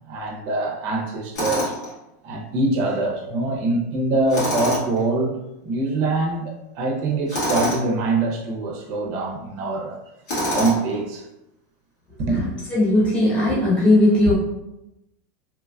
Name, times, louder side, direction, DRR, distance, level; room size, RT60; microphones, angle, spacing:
voice 1, 0.1-1.7 2.2-10.0 10.5-11.2 12.2-12.4, right 2 dB, 40° right, 0 dB, 0.6 m, -24 dB
Tools, 1.4-1.9 4.3-5.0 7.3-7.9 10.3-11.0, left 1 dB, 85° left, 1.3 m, -25 dB
voice 2, 12.3-14.3, left 1 dB, 15° left, -8 dB, 1.0 m, -18 dB
3.0 x 2.4 x 2.2 m, 0.90 s
supercardioid pair, 160°, 9 cm